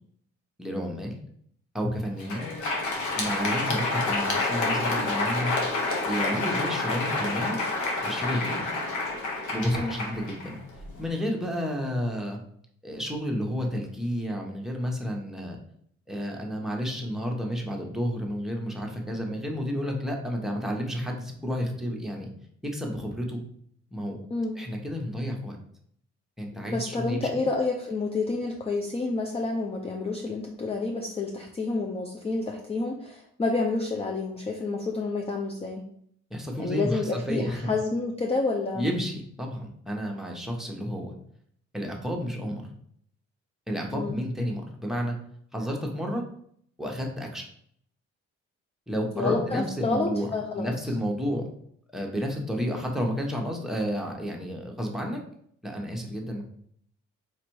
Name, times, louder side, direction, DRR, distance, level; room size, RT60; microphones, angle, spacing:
voice 1, 0.6-1.2 1.7-2.5 3.2-5.5 6.1-7.6 8.0-8.7 9.5-10.6 11.0-12.4 12.8-15.6 16.1-22.3 22.6-23.4 23.9-24.2 24.5-25.6 26.4-27.3 36.3-37.7 38.7-41.1 41.7-42.7 43.7-45.2 45.5-46.2 46.8-47.4 48.9-50.3 50.6-51.5 51.9-55.2 55.6-56.4, equal, ahead, -1 dB, 1.0 m, -31 dB
Crowd, 2.1-11.0, left 2 dB, 80° left, 1.2 m, -28 dB
voice 2, 26.7-35.8 36.6-38.9 43.9-44.2 48.9-50.7 52.6-52.8, left 3 dB, 20° left, 2 dB, 0.5 m, -29 dB
4.4 x 2.5 x 4.6 m, 0.65 s
cardioid pair, 90°, 30 cm